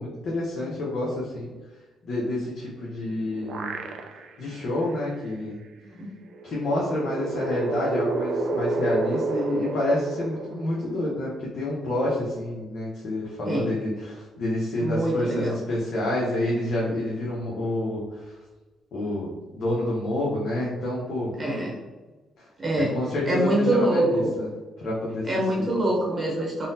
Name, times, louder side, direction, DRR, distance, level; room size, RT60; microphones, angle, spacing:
voice 1, 0.0-1.5 2.0-3.7 4.4-5.6 6.4-18.3 18.9-21.3 22.4-22.5 22.7-24.5 24.8-25.3 25.6-25.7, left 1 dB, 60° left, -5 dB, 0.7 m, -28 dB
sound 1, 2.8-4.5 4.9-5.0 6.3-11.1, right 3 dB, 75° right, 0.4 m, -30 dB
voice 2, 14.8-15.5 21.4-21.8 22.6-22.9 23.3-24.3 25.2-26.7, right 1 dB, 30° right, -4 dB, 0.8 m, -24 dB
3.7 x 2.0 x 2.7 m, 1.2 s
cardioid pair, 90°, 0 cm